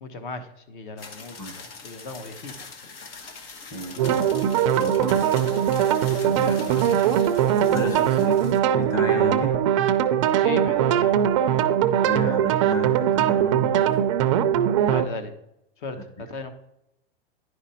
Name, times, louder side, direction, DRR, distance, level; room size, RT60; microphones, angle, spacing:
voice 1, 0.0-2.7 4.1-4.3 6.1-6.3 8.1-8.3 10.4-12.0 14.8-15.3 15.8-16.5, left 3 dB, 55° left, 10 dB, 1.2 m, -37 dB
sound 1, 1.0-8.6, left 4 dB, 75° left, 1.5 m, -43 dB
voice 2, 3.7-5.7 6.2-7.4 7.7-8.4 8.7-9.6 12.0-14.0 16.0-16.1, right 1 dB, 10° left, 3 dB, 0.6 m, -32 dB
sound 2, 4.0-15.1, right 10 dB, 35° right, 0.4 m, -21 dB
10.5 x 5.0 x 4.3 m, 0.85 s
supercardioid pair, 165°, 30 cm